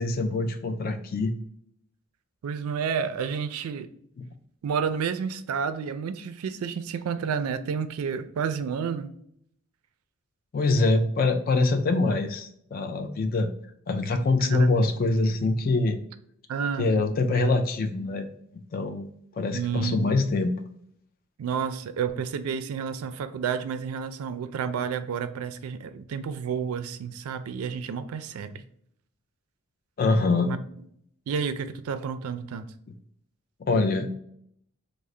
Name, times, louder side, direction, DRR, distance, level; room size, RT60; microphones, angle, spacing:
voice 1, 0.0-1.3 4.2-4.3 10.5-13.5 13.9-16.0 16.8-18.3 18.7-19.1 19.4-20.5 30.0-30.5 33.6-34.1, left 3 dB, 45° left, 6 dB, 0.3 m, -24 dB
voice 2, 2.4-3.9 4.6-9.1 14.4-14.7 16.5-17.0 19.5-20.0 21.4-28.6 30.4-30.6 31.3-32.6, right 6 dB, 85° right, 11 dB, 0.3 m, -30 dB
3.7 x 2.0 x 3.1 m, 0.69 s
head